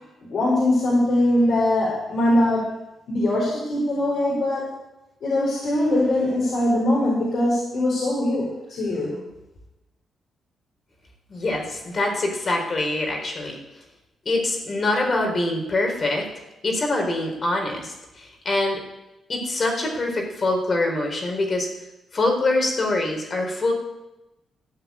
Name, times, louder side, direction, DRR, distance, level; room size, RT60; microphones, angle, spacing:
voice 1, 0.3-2.7 3.1-4.6 5.2-9.2, left 1 dB, 65° left, -5 dB, 4.7 m, -21 dB
voice 2, 11.3-13.6 14.2-16.3 16.6-18.8 19.3-21.7 22.1-23.7, left 2 dB, 45° left, 2 dB, 4.3 m, -24 dB
14.0 x 5.8 x 9.6 m, 0.97 s
supercardioid pair, 60°, 0 cm